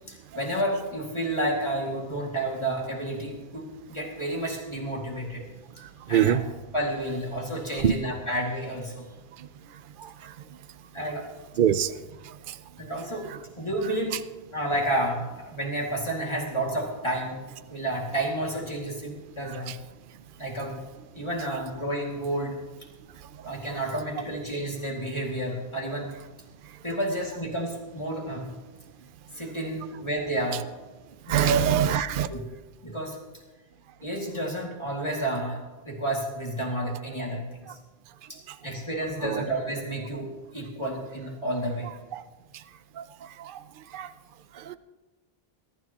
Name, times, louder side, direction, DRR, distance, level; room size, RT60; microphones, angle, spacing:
voice 1, 0.1-5.5 6.1-6.4 6.7-9.1 10.9-11.3 12.8-13.3 13.5-14.2 14.5-17.4 17.7-19.7 20.4-20.8 21.1-22.6 23.4-26.1 26.8-28.5 29.3-30.6 31.3-31.6 32.3-32.4 32.8-33.2 34.0-37.8 38.3-41.9, right 1 dB, 25° left, -2 dB, 2.4 m, -31 dB
voice 2, 11.6-11.9 19.7-19.8 31.3-32.3 39.2-39.4 42.1-42.2 43.0-43.1 43.9-44.1 44.7-44.8, right 9 dB, 60° right, 12 dB, 0.7 m, -23 dB
22.0 x 13.0 x 3.0 m, 1.2 s
omnidirectional pair, 1.1 m